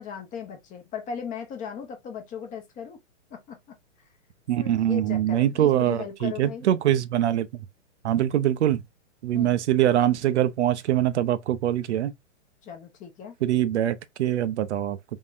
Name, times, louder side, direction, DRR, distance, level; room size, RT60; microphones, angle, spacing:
voice 1, 0.0-3.0 3.3-3.8 4.6-6.7 9.3-9.6 12.6-13.3, left 7 dB, 20° left, 0.9 m, -37 dB
voice 2, 4.5-7.5 8.0-8.8 9.2-12.1 13.4-15.0, right 11 dB, 65° right, 0.6 m, -23 dB
3.7 x 3.5 x 2.4 m
hypercardioid pair, 135°, 37 cm